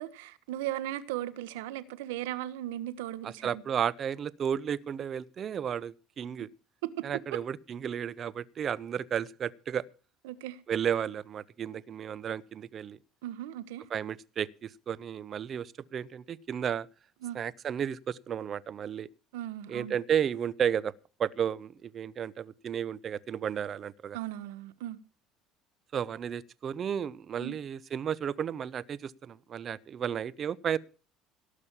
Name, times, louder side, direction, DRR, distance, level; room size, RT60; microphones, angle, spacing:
voice 1, 0.0-3.6 6.8-7.1 10.2-10.6 13.2-13.8 17.2-17.4 19.3-19.9 24.1-25.0 27.4-27.6, right 13 dB, 90° right, 1.2 m, -37 dB
voice 2, 3.2-6.5 7.0-9.8 10.7-13.0 13.9-16.9 17.3-19.1 19.7-20.9 21.2-24.2 25.9-30.8, right 8 dB, 45° right, 0.8 m, -33 dB
17.5 x 6.4 x 7.2 m
supercardioid pair, 95°, 0 cm